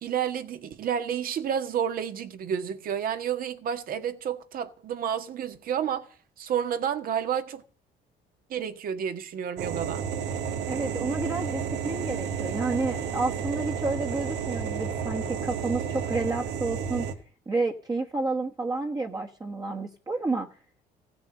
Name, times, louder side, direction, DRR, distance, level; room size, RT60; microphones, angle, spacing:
voice 1, 0.0-6.1 6.4-7.6 8.5-10.0, right 8 dB, 60° right, 1.6 m, -30 dB
sound 1, 9.6-17.1, right 7 dB, 85° right, 2.0 m, -31 dB
voice 2, 10.7-17.1 17.5-20.5, right 3 dB, 20° right, 1.4 m, -30 dB
16.0 x 6.9 x 9.5 m
cardioid pair, 110°, 17 cm